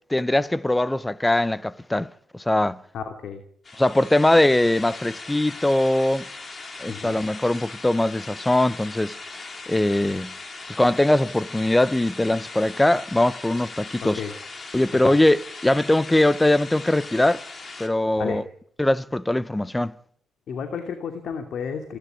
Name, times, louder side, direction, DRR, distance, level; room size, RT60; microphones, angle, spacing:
voice 1, 0.1-2.8 3.8-6.3 6.8-9.2 9.7-10.3 10.8-14.2 14.7-17.4 17.8-18.4 18.8-19.9, left 1 dB, 10° left, 0.8 m, -21 dB
voice 2, 2.9-3.4 6.9-7.2 14.0-14.3 15.0-15.2 18.2-18.5 20.5-22.0, left 6 dB, 65° left, 2.7 m, -32 dB
sound 1, 3.6-17.9, left 3 dB, 35° left, 3.3 m, -39 dB
28.5 x 12.0 x 9.4 m
cardioid pair, 90°, 0 cm